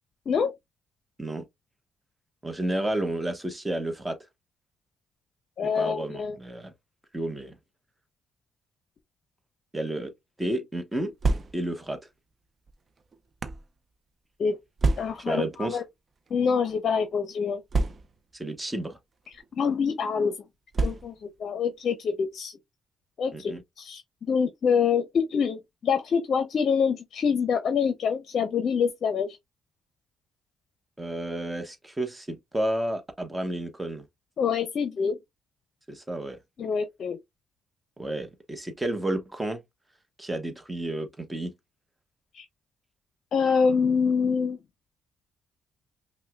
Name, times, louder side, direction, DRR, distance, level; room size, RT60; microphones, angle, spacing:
voice 1, 2.4-4.2 5.6-6.7 7.1-7.6 9.7-10.1 10.4-11.1 11.5-12.0 15.3-15.8 18.3-19.0 23.3-23.6 31.0-34.1 35.9-36.4 38.0-39.6 40.2-41.5, right 1 dB, 10° right, 1.0 m, -31 dB
voice 2, 5.6-6.4 14.4-14.6 15.0-15.8 16.3-17.6 19.6-20.3 20.8-22.5 23.2-24.0 24.3-29.4 34.4-35.2 36.6-37.2 42.3-42.5 43.3-44.6, left 6 dB, 55° left, 0.6 m, -26 dB
sound 1, 11.0-11.9 12.7-13.7 14.8-15.4 16.3-16.4 16.7-16.8 17.7-18.4 19.3-19.5 20.7-21.4, right 3 dB, 40° right, 0.5 m, -28 dB
5.3 x 2.1 x 2.3 m
cardioid pair, 90°, 0 cm